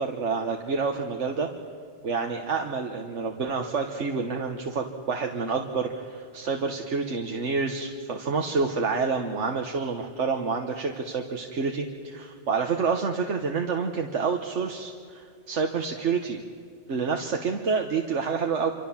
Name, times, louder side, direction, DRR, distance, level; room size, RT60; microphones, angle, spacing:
voice 1, 0.0-1.5 2.0-16.4 16.9-18.7, right 5 dB, 80° right, 3 dB, 1.6 m, -28 dB
26.5 x 25.0 x 7.3 m, 2.2 s
omnidirectional pair, 1.2 m